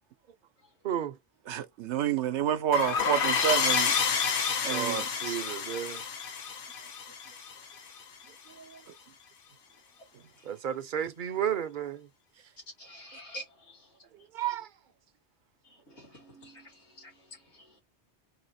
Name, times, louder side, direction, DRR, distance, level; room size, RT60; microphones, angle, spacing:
voice 1, 0.8-1.2 4.3-4.4 4.7-6.0 8.5-8.8 10.4-12.1 14.3-14.7, right 9 dB, 55° right, 0.7 m, -33 dB
voice 2, 1.5-4.0 4.6-5.4 8.9-9.0 10.1-10.2, right 10 dB, 80° right, 0.9 m, -29 dB
sound 1, 2.7-8.0, left 6 dB, 55° left, 0.9 m, -29 dB
voice 3, 12.8-13.9 15.6-17.8, equal, 80° left, 2.3 m, -48 dB
3.9 x 2.8 x 4.1 m
omnidirectional pair, 1.2 m